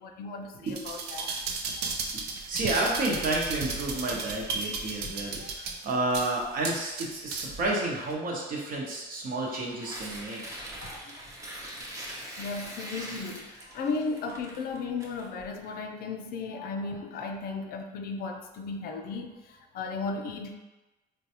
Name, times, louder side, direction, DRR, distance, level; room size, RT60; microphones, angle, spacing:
voice 1, 0.0-1.4 1.8-1.9 5.4-5.5 9.8-10.0 10.8-11.3 12.4-20.5, left 4 dB, 65° left, 5 dB, 0.4 m, -35 dB
voice 2, 0.6-1.2 2.1-10.4, right 2 dB, 55° right, -2 dB, 0.9 m, -31 dB
sound 1, 0.7-7.7 8.1-8.2, right 4 dB, 75° right, 0.5 m, -35 dB
Tearing, 9.4-15.7, right 1 dB, 20° right, 0.7 m, -42 dB
3.8 x 2.2 x 2.8 m, 1.1 s
cardioid pair, 110°, 17 cm